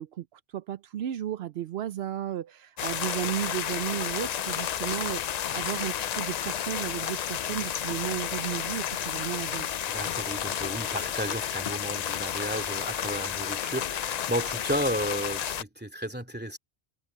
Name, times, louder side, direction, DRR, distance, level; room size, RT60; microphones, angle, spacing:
voice 1, 0.0-9.7, right 12 dB, 80° right, 0.8 m, -34 dB
sound 1, 2.8-15.6, left 9 dB, 55° left, 0.5 m, -31 dB
voice 2, 9.9-16.6, equal, 10° right, 2.5 m, -33 dB
omnidirectional pair, 1.1 m